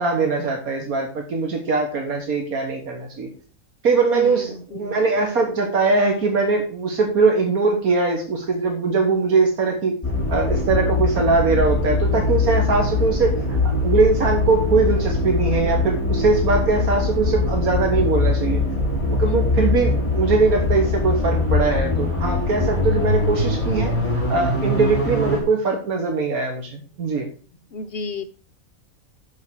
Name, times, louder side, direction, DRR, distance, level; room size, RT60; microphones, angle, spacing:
voice 1, 0.0-3.3 3.8-9.9 10.3-18.6 19.1-27.3, right 4 dB, 80° right, 3 dB, 1.9 m, -21 dB
voice 2, 4.1-5.0 19.2-19.6 27.7-28.2, left 3 dB, 55° left, 9 dB, 0.8 m, -32 dB
sound 1, 10.0-25.4, left 2 dB, 25° left, 5.0 m, -22 dB
11.5 x 5.7 x 4.5 m, 0.39 s
omnidirectional pair, 1.5 m